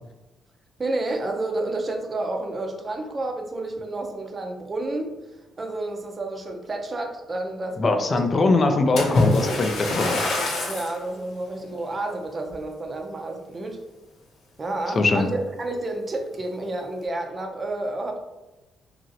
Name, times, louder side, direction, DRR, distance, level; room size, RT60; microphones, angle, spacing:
voice 1, 0.8-9.0 10.7-13.8 14.6-18.2, right 2 dB, 30° right, 3 dB, 0.5 m, -30 dB
voice 2, 7.8-10.2 15.0-15.3, left 3 dB, 40° left, 6 dB, 0.4 m, -21 dB
Splash splatter, 9.0-11.0 11.7-11.9 12.5-12.6, left 2 dB, 75° left, 0.8 m, -24 dB
3.0 x 2.5 x 2.7 m, 1.0 s
cardioid pair, 90°, 0 cm